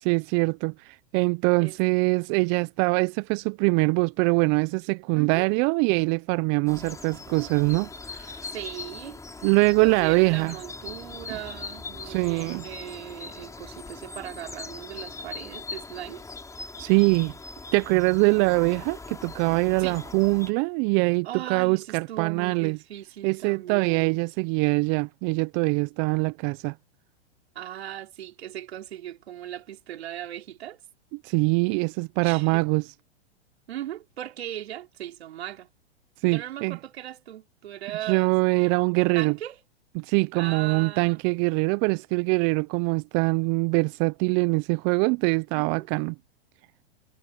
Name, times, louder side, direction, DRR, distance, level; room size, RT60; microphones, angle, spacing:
voice 1, 0.0-8.5 9.4-10.6 12.0-12.6 16.8-17.3 17.7-22.8 23.2-26.7 31.2-32.9 36.2-36.8 38.0-39.4 40.0-46.1, right 30 dB, 35° right, 0.6 m, -23 dB
voice 2, 5.2-5.5 8.4-9.2 9.8-16.2 19.8-20.0 21.2-24.2 27.6-30.8 32.2-32.6 33.7-35.7 36.3-38.3 39.1-39.6 40.3-41.2 45.6-45.9, right 12 dB, 70° right, 3.5 m, -38 dB
sound 1, 6.7-20.5, left 4 dB, 10° left, 5.8 m, -41 dB
hypercardioid pair, 115°, 33 cm